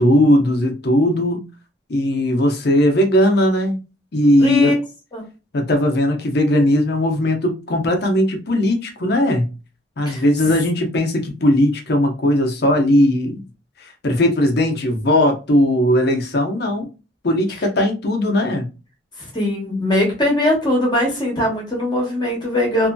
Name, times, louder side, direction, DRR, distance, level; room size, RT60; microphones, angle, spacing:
voice 1, 0.0-1.4 1.9-3.8 4.1-4.8 5.5-9.5 10.0-13.4 13.8-16.9 17.2-18.7, left 1 dB, 55° left, 0.7 m, -18 dB
voice 2, 4.4-4.8 5.1-5.3 10.0-10.2 19.2-22.9, left 1 dB, 25° left, 1.0 m, -20 dB
2.6 x 2.6 x 2.2 m
head